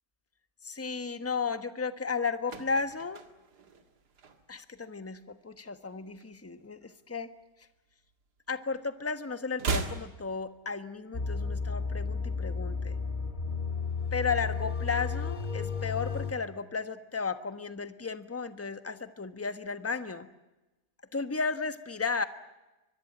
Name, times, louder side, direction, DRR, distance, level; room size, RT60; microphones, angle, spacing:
voice 1, 0.6-3.2 4.5-7.3 8.5-13.0 14.1-20.3 21.1-22.2, left 5 dB, 10° left, 10 dB, 1.0 m, -34 dB
sound 1, 2.1-4.8 5.1-5.4 5.6-7.1 7.4-8.7 9.0-11.1 11.4-11.5, right 4 dB, 70° right, 2.5 m, -38 dB
sound 2, 11.1-16.3, left 5 dB, 30° left, 1.7 m, -33 dB
24.5 x 21.5 x 8.6 m, 1.0 s
omnidirectional pair, 1.8 m